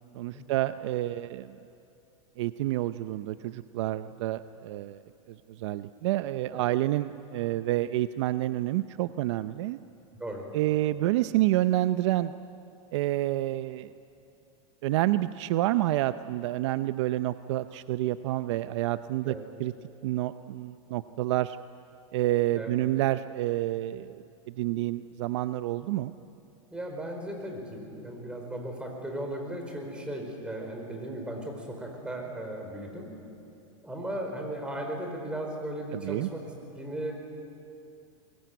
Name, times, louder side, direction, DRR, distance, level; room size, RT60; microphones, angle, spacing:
voice 1, 0.1-1.5 2.4-5.0 5.3-9.8 10.5-12.3 12.9-13.9 14.8-19.3 19.6-19.7 20.0-21.6 22.1-26.1 35.9-36.3, right 15 dB, 60° right, 13 dB, 0.6 m, -28 dB
voice 2, 26.7-33.1 33.8-37.1, right 1 dB, 5° right, 1 dB, 4.6 m, -36 dB
22.5 x 21.5 x 9.3 m, 2.7 s
supercardioid pair, 145°, 17 cm